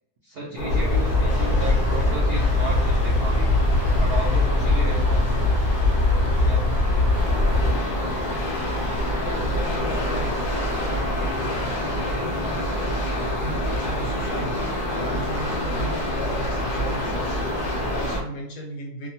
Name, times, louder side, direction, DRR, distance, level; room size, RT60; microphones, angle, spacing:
voice 1, 0.2-3.5 4.0-5.5 6.4-6.7, right 2 dB, 75° right, -3 dB, 0.5 m, -34 dB
sound 1, 0.5-18.2, equal, 85° left, 0.4 m, -27 dB
sound 2, 0.7-7.7, left 2 dB, 40° right, 0.8 m, -21 dB
Knock, 7.7-11.2 11.5-11.9, left 1 dB, 15° left, 0.4 m, -44 dB
voice 2, 9.2-19.1, equal, 70° left, 0 dB, 0.9 m, -37 dB
2.8 x 2.2 x 2.7 m, 0.72 s
omnidirectional pair, 1.8 m